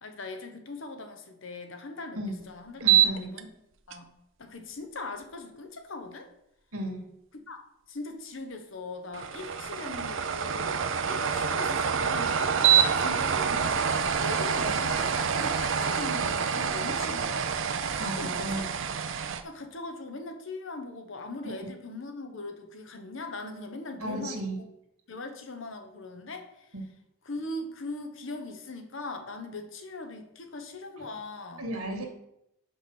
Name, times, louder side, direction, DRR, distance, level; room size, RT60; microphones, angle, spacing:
voice 1, 0.0-3.5 3.9-4.1 4.4-6.3 7.5-17.5 18.0-18.6 19.4-24.7 25.1-26.7 27.2-31.7, left 2 dB, 60° left, 6 dB, 1.0 m, -40 dB
sound 1, 2.8-3.4 3.9-4.0 9.1-19.4, right 7 dB, 55° right, 0.5 m, -26 dB
voice 2, 2.8-3.3 6.7-7.1 18.0-18.6 21.5-21.6 24.0-24.6 26.7-26.8 31.6-32.0, right 1 dB, 80° right, 2 dB, 2.0 m, -34 dB
5.6 x 5.4 x 6.2 m, 0.81 s
head